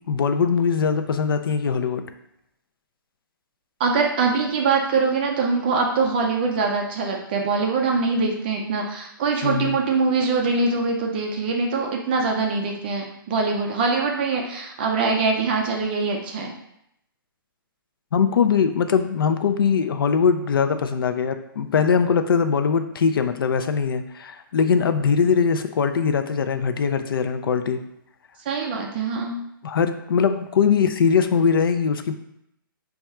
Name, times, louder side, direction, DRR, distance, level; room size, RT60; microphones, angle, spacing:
voice 1, 0.1-2.0 9.4-9.8 18.1-27.8 29.6-32.1, left 6 dB, 75° left, 9 dB, 0.4 m, -21 dB
voice 2, 3.8-16.5 28.5-29.4, right 4 dB, 25° right, 1 dB, 0.3 m, -23 dB
3.4 x 2.3 x 4.2 m, 0.79 s
hypercardioid pair, 160°, 12 cm